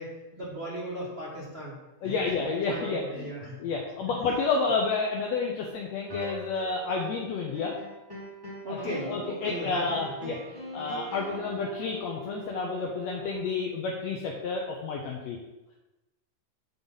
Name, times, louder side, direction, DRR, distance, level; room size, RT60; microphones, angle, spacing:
voice 1, 0.0-1.8 2.0-2.2 2.7-3.5 8.6-9.9 10.2-10.4, equal, 60° right, -7 dB, 0.6 m, -37 dB
voice 2, 2.0-3.3 3.6-7.7 8.7-8.8 9.1-10.4 10.7-15.4, left 4 dB, 80° left, 0 dB, 1.5 m, -30 dB
sound 1, 6.1-7.3 7.5-13.4, right 1 dB, 15° right, 0.8 m, -41 dB
8.4 x 3.9 x 5.4 m, 1.0 s
omnidirectional pair, 3.9 m